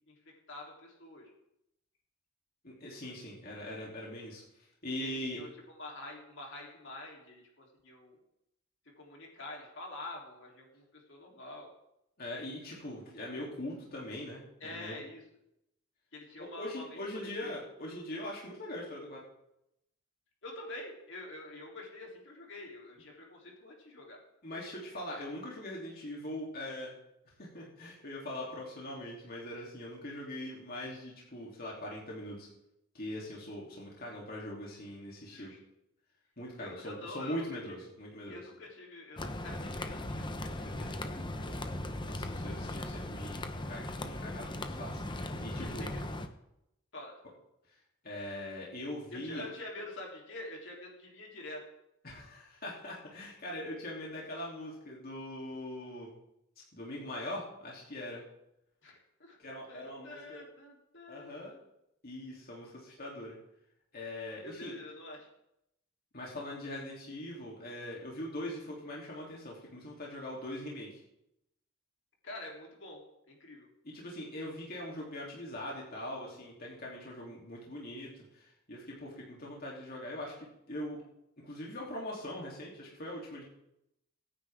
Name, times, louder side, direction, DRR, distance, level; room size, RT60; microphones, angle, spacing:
voice 1, 0.5-1.3 4.9-8.2 9.0-11.7 14.6-15.2 16.1-17.5 20.4-24.2 35.3-35.6 36.6-37.6 38.3-41.5 45.5-46.0 46.9-47.1 49.1-51.7 58.8-59.4 59.7-61.6 64.3-65.3 72.2-73.7, left 2 dB, 65° left, -1 dB, 3.6 m, -47 dB
voice 2, 2.6-4.4 4.8-5.4 12.2-15.0 16.4-19.2 24.4-26.9 27.4-32.5 32.9-35.5 36.4-38.4 42.0-45.9 47.7-47.8 48.0-49.4 52.0-56.1 56.7-58.2 59.4-60.4 61.1-61.5 62.0-63.4 63.9-64.7 66.1-71.0 73.8-81.0 81.4-83.4, left 1 dB, 50° left, -4 dB, 3.3 m, -42 dB
sound 1, 39.2-46.3, left 1 dB, 25° left, 1.0 m, -38 dB
23.5 x 9.8 x 3.7 m, 0.82 s
head